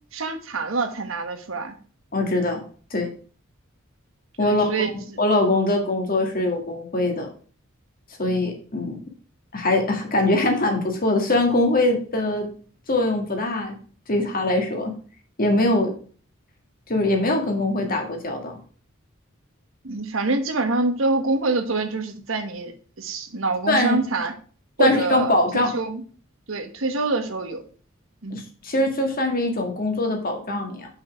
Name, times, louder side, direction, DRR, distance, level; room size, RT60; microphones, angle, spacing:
voice 1, 0.1-1.7 4.4-4.9 19.8-24.3 24.8-25.3 25.7-26.0 26.5-27.6 28.2-28.4, right 3 dB, 70° right, 7 dB, 1.2 m, -25 dB
voice 2, 2.1-2.6 2.9-3.1 4.4-4.9 5.2-7.3 8.2-9.0 9.5-12.5 12.9-13.7 14.1-14.9 15.4-15.9 16.9-18.6 23.7-24.0 24.8-25.7 28.3-30.9, left 2 dB, 45° left, 3 dB, 1.9 m, -22 dB
5.7 x 5.6 x 5.8 m, 0.41 s
head